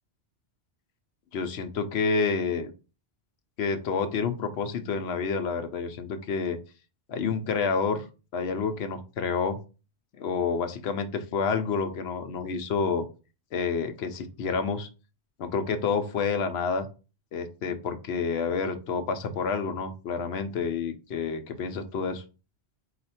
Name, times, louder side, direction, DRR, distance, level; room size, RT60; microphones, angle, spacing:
voice 1, 1.3-2.7 3.6-6.6 7.1-8.0 8.3-9.6 10.2-13.1 13.5-14.9 15.4-16.9 17.3-22.2, left 5 dB, 75° left, 8 dB, 0.9 m, -29 dB
4.3 x 2.4 x 4.1 m, 0.33 s
omnidirectional pair, 1.1 m